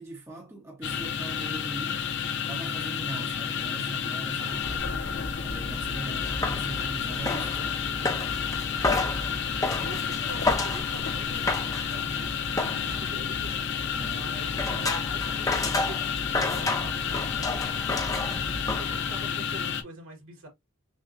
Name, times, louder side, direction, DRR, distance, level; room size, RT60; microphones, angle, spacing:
voice 1, 0.0-2.0 2.5-4.6 5.4-7.8 14.0-14.3, right 2 dB, 10° right, 0.9 m, -40 dB
sound 1, 0.8-19.8, left 7 dB, 55° left, 0.6 m, -31 dB
voice 2, 4.4-5.2 6.0-6.2 9.0-20.5, right 1 dB, 65° right, 2.3 m, -46 dB
sound 2, 4.5-19.4, left 2 dB, 15° left, 0.6 m, -32 dB
6.4 x 2.2 x 2.5 m
head